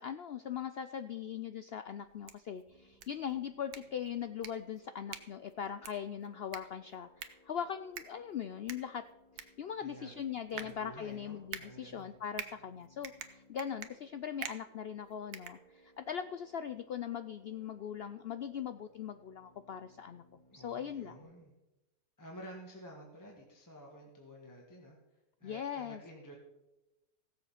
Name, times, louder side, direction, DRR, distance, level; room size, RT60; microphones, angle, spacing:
voice 1, 0.0-7.1 7.4-9.0 9.4-20.2 20.5-21.2 25.4-26.0, left 8 dB, 75° left, 11 dB, 0.5 m, -40 dB
sound 1, 2.0-16.2, right 8 dB, 90° right, 1.5 m, -49 dB
sound 2, 2.7-21.2, left 1 dB, 30° left, 3.5 m, -65 dB
voice 2, 9.8-10.2 10.5-12.1 20.5-21.5 22.2-25.0 25.4-26.4, equal, 10° left, -1 dB, 1.7 m, -51 dB
16.0 x 7.5 x 5.7 m, 0.98 s
omnidirectional pair, 1.6 m